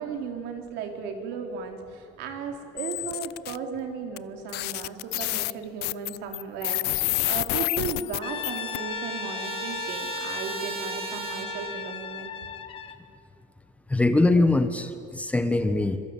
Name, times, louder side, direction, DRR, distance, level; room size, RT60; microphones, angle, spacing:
voice 1, 0.0-12.3, right 5 dB, 75° right, 4 dB, 4.2 m, -35 dB
sound 1, 2.8-3.6 4.2-4.3 4.5-8.8, left 20 dB, 70° left, 0.6 m, -29 dB
Trumpet, 7.7-12.1, right 6 dB, 35° right, 2.3 m, -38 dB
Brass instrument, 8.2-13.0, left 8 dB, 30° left, 1.6 m, -36 dB
voice 2, 13.9-16.0, left 2 dB, 10° left, 9 dB, 1.2 m, -22 dB
25.5 x 23.5 x 9.1 m, 2.4 s
cardioid pair, 170°, 17 cm